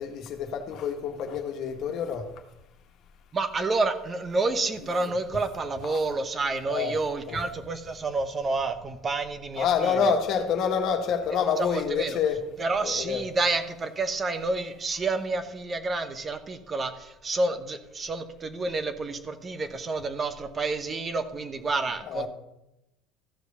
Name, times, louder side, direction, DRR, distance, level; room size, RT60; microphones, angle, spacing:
voice 1, 0.0-2.3 4.5-4.7 5.0-5.1 5.8-6.0 6.7-6.9 7.3-7.4 9.6-12.5 12.8-13.2 22.1-22.3, left 7 dB, 55° left, 5 dB, 1.6 m, -27 dB
voice 2, 3.3-10.1 11.6-12.2 12.6-22.3, right 3 dB, 25° right, 10 dB, 1.0 m, -29 dB
14.0 x 5.1 x 6.8 m, 0.90 s
supercardioid pair, 120°, 0 cm